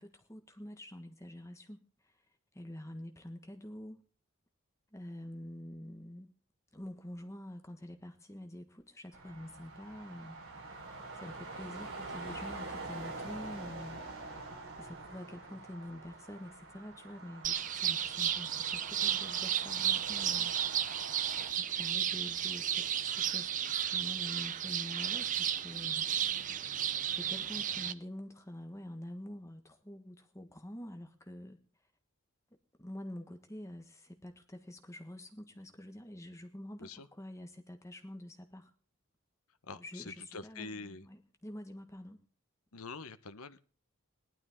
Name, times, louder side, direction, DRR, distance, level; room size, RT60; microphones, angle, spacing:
voice 1, 0.0-2.1 2.5-4.0 4.9-6.3 6.7-10.4 11.1-14.0 14.8-20.5 21.5-26.1 27.1-31.6 32.8-38.7 39.8-42.2, left 1 dB, 15° left, 6 dB, 1.4 m, -47 dB
sound 1, 9.1-21.5, right 3 dB, 65° right, 4.3 m, -46 dB
sound 2, 17.4-27.9, right 10 dB, 35° right, 0.6 m, -33 dB
voice 2, 39.6-41.1 42.7-43.6, left 4 dB, 80° left, 13 dB, 1.0 m, -45 dB
19.0 x 12.0 x 3.7 m, 0.40 s
head